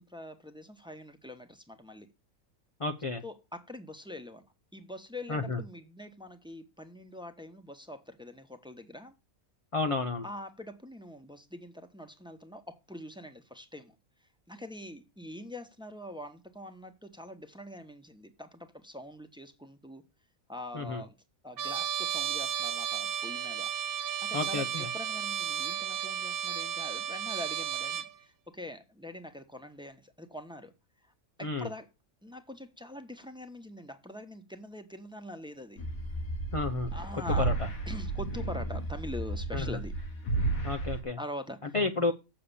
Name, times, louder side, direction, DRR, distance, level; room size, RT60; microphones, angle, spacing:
voice 1, 0.0-2.1 3.2-4.4 4.7-9.2 10.2-13.9 14.2-20.0 20.5-21.2 21.4-30.7 31.0-31.9 32.2-35.8 36.9-37.5 37.9-39.9 41.2-41.7, left 1 dB, 5° right, 1.2 m, -44 dB
voice 2, 2.8-3.2 5.3-5.6 9.7-10.2 20.7-21.0 24.3-24.9 31.4-31.7 36.5-36.9 37.4-37.5 39.5-39.8 40.6-41.2 41.7-42.1, left 3 dB, 30° left, 0.7 m, -31 dB
Trumpet, 21.6-28.1, right 8 dB, 50° right, 0.8 m, -33 dB
sound 1, 35.8-41.0, right 2 dB, 80° left, 2.1 m, -33 dB
7.7 x 6.9 x 6.9 m
omnidirectional pair, 1.5 m